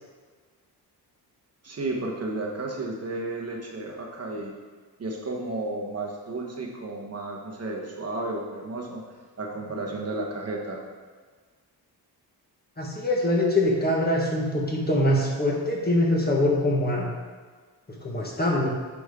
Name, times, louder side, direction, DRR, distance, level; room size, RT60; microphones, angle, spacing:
voice 1, 1.6-4.5 5.0-9.0 9.4-10.8, right 2 dB, 40° right, -1 dB, 1.0 m, -32 dB
voice 2, 12.8-17.1 18.0-18.7, left 1 dB, 25° left, -3 dB, 1.3 m, -23 dB
8.3 x 5.2 x 3.6 m, 1.5 s
wide cardioid pair, 140°, 40 cm